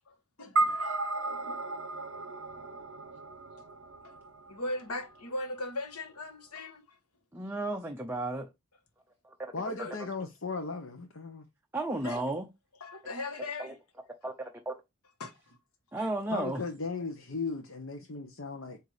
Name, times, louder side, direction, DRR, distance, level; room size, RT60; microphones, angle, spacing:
voice 1, 0.1-1.6 1.9-2.0 2.6-2.8 4.0-4.1 4.5-7.0 9.7-9.9 12.0-12.2 12.8-13.7 15.2-15.6 16.0-16.1, left 2 dB, 90° left, 1.4 m, -39 dB
sound 1, 0.6-5.1, right 2 dB, 60° right, 0.7 m, -34 dB
voice 2, 7.3-8.5 9.2-9.7 11.7-12.5 13.6-13.7 14.2-14.8 15.9-16.6, right 2 dB, 10° right, 0.7 m, -34 dB
voice 3, 9.5-11.4 16.3-18.8, left 4 dB, 60° left, 0.9 m, -37 dB
8.0 x 2.8 x 4.9 m
head